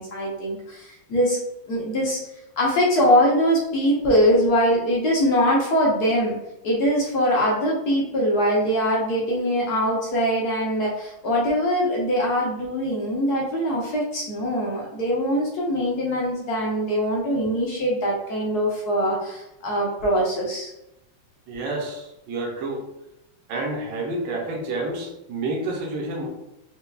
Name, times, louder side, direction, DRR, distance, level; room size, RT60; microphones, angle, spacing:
voice 1, 0.0-1.4 1.7-2.2 2.6-6.4 6.6-20.7, equal, 65° left, -3 dB, 1.0 m, -22 dB
voice 2, 21.5-22.9 23.5-26.3, right 2 dB, 70° right, -2 dB, 1.5 m, -29 dB
4.6 x 2.8 x 2.2 m, 0.86 s
omnidirectional pair, 2.4 m